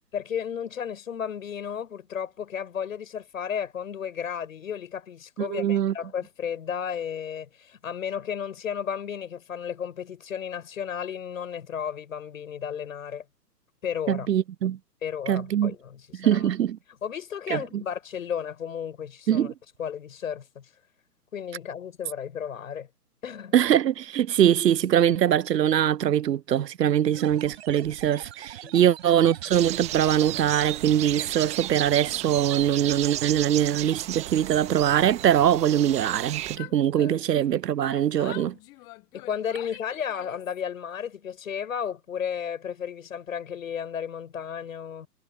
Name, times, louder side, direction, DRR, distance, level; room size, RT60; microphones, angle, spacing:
voice 1, 0.1-13.2 13.8-14.3 15.0-16.5 17.0-19.5 19.8-20.7 21.3-22.9 23.2-23.6 28.6-28.7 36.7-37.2 39.1-45.1, left 8 dB, 55° left, 7.6 m, -33 dB
voice 2, 5.4-5.9 14.1-14.8 15.3-15.7 16.2-16.8 17.5-17.8 19.3-19.5 23.5-38.5, right 10 dB, 85° right, 0.5 m, -22 dB
sound 1, 27.1-35.5, right 12 dB, 40° right, 4.5 m, -44 dB
sound 2, 29.5-36.6, right 14 dB, 15° right, 1.4 m, -34 dB
Yell, 35.8-37.5 37.8-40.6, left 23 dB, 10° left, 0.6 m, -46 dB
figure-of-eight pair, 130°, 48 cm